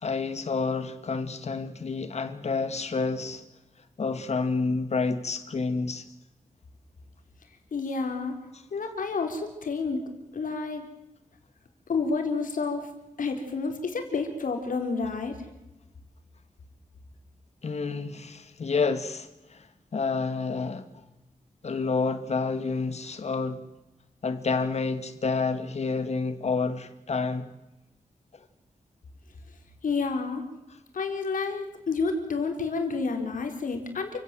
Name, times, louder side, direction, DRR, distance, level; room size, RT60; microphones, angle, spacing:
voice 1, 0.0-3.4 4.0-6.0 17.6-19.7 19.9-20.9 21.6-23.6 24.2-27.5, left 4 dB, 55° left, 2.0 m, -29 dB
voice 2, 7.7-8.4 8.7-10.0 10.3-10.8 11.9-12.9 13.2-15.4 29.8-30.4 30.9-34.2, left 4 dB, 85° left, 4.2 m, -29 dB
29.0 x 16.5 x 7.7 m
wide cardioid pair, 170°, 13 cm